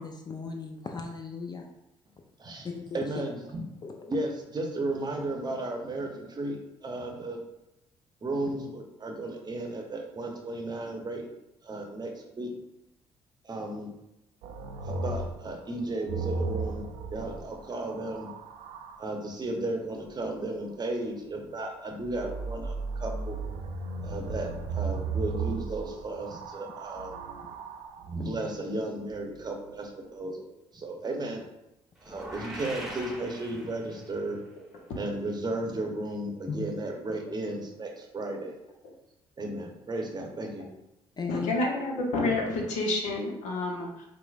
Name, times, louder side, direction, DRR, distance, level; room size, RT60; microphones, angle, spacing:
voice 1, 0.0-1.7 2.6-3.0 3.8-4.1 36.5-36.6 41.2-41.5, left 5 dB, 35° left, 3 dB, 0.4 m, -36 dB
voice 2, 2.9-3.6 4.1-7.4 8.2-11.3 11.6-12.5 13.4-13.9 14.8-18.3 19.0-23.4 24.0-27.1 28.0-30.4 30.7-31.4 32.0-34.4 35.0-38.5 39.4-40.7, right 2 dB, 35° right, 2 dB, 0.7 m, -34 dB
sound 1, 14.4-19.0 22.0-28.1 29.1-29.7, right 4 dB, 75° right, 0.4 m, -35 dB
sound 2, 32.0-34.2, right 1 dB, ahead, 1.0 m, -41 dB
voice 3, 41.3-44.1, left 2 dB, 70° left, 0 dB, 0.7 m, -29 dB
4.4 x 2.0 x 2.4 m, 0.87 s
hypercardioid pair, 50°, 13 cm